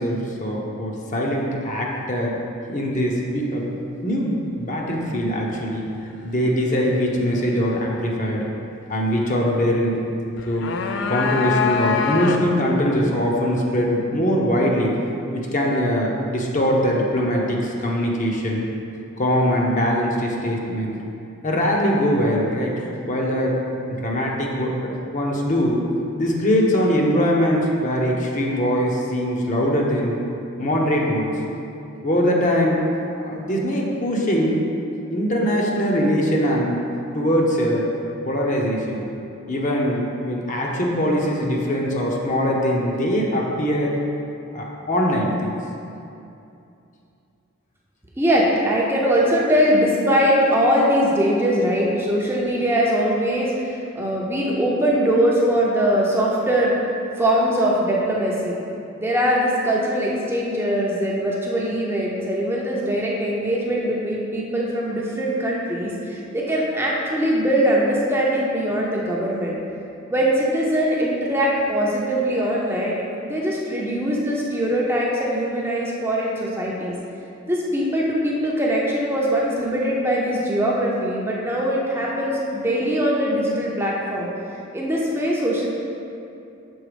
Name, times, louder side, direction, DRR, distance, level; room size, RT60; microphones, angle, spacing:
voice 1, 0.0-2.4 2.7-3.7 4.0-5.9 6.2-8.5 8.9-10.0 10.5-10.7 11.1-14.9 15.3-18.6 19.2-21.0 21.4-23.6 23.9-25.8 26.2-30.2 30.6-31.4 32.0-32.8 33.2-34.6 35.1-37.9 38.3-39.1 39.5-44.0 44.5-45.6, equal, 35° left, -2 dB, 0.7 m, -22 dB
sound 1, 10.4-12.7, left 6 dB, 55° left, 0.3 m, -24 dB
voice 2, 48.2-56.8 57.2-58.6 59.0-69.6 70.1-76.9 77.5-84.3 84.7-85.7, equal, 10° right, -4 dB, 0.6 m, -21 dB
6.3 x 3.9 x 5.0 m, 2.7 s
head